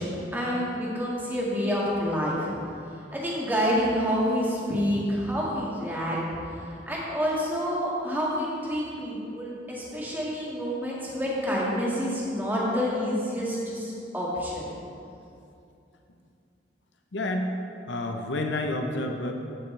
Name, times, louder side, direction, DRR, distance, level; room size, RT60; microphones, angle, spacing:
voice 1, 0.0-2.5 3.1-6.2 6.5-14.7, equal, 10° right, -6 dB, 1.8 m, -28 dB
voice 2, 17.1-17.6 17.9-19.3, left 1 dB, 80° left, 3 dB, 0.8 m, -29 dB
14.5 x 6.0 x 3.3 m, 2.6 s
head